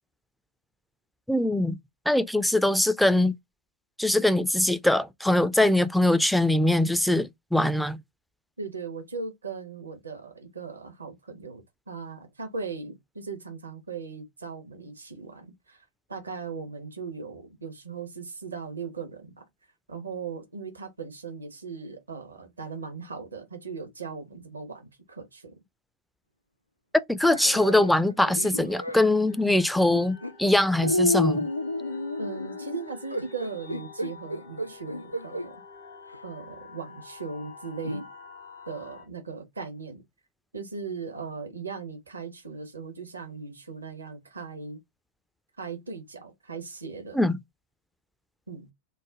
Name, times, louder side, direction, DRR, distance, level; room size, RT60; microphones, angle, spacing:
voice 1, 1.3-1.8 2.1-3.4 4.0-8.0 26.9-31.5 47.1-47.4, left 1 dB, ahead, 0.3 m, -22 dB
voice 2, 8.6-19.4 19.9-25.5 32.2-35.6 36.2-38.1 38.7-40.0 40.5-44.8 45.6-47.2 48.5-48.7, right 4 dB, 75° right, 0.7 m, -38 dB
sound 1, 27.2-29.1 29.9-30.3 30.8-35.5 36.1-36.2 37.8-38.1, left 1 dB, 90° left, 0.3 m, -30 dB
sound 2, 29.3-39.0, left 4 dB, 70° left, 1.3 m, -47 dB
3.2 x 2.1 x 3.6 m
figure-of-eight pair, 90°, 0 cm